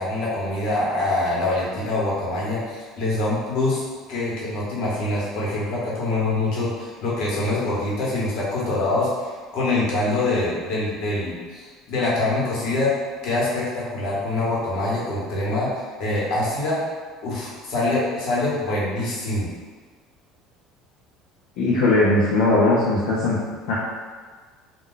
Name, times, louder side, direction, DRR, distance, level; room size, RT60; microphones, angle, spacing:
voice 1, 0.0-3.8 4.1-12.9 13.2-15.7 16.0-16.8 17.2-19.5, left 2 dB, 65° left, -6 dB, 1.1 m, -24 dB
voice 2, 21.6-23.4 23.7-23.8, left 2 dB, 80° left, -7 dB, 0.5 m, -19 dB
2.3 x 2.2 x 3.7 m, 1.5 s
cardioid pair, 130°, 0 cm